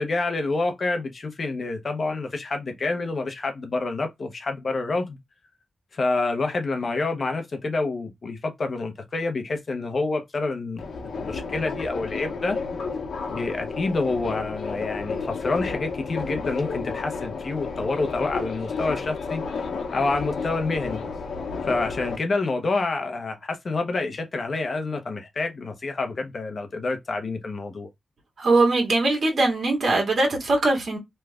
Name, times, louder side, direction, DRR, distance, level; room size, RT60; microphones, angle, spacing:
voice 1, 0.0-5.2 5.9-12.6 13.3-19.4 19.9-21.0 21.6-27.9, left 3 dB, 50° left, 0.8 m, -28 dB
Subway metro underground, 10.8-22.2, left 4 dB, 80° left, 1.1 m, -31 dB
voice 2, 28.4-31.0, right 2 dB, 65° right, 1.9 m, -21 dB
3.3 x 3.2 x 2.3 m
cardioid pair, 80°, 0 cm